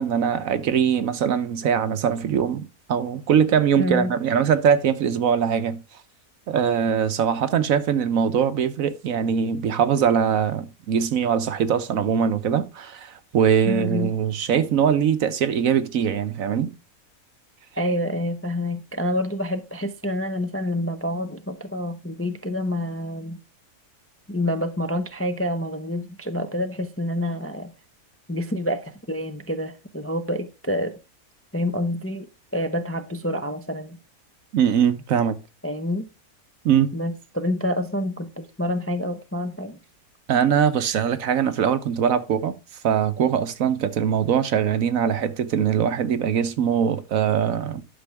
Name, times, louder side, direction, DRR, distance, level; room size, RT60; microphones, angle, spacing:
voice 1, 0.0-5.8 6.5-16.7 34.5-35.4 36.6-36.9 40.3-42.5 42.8-47.8, right 8 dB, 65° right, 1.1 m, -22 dB
voice 2, 3.8-4.1 13.7-14.1 17.8-23.4 24.3-27.7 28.3-30.9 31.5-32.3 32.5-34.0 35.6-36.1 36.9-39.8, left 1 dB, 15° left, 0.5 m, -27 dB
11.5 x 6.8 x 3.4 m
omnidirectional pair, 1.6 m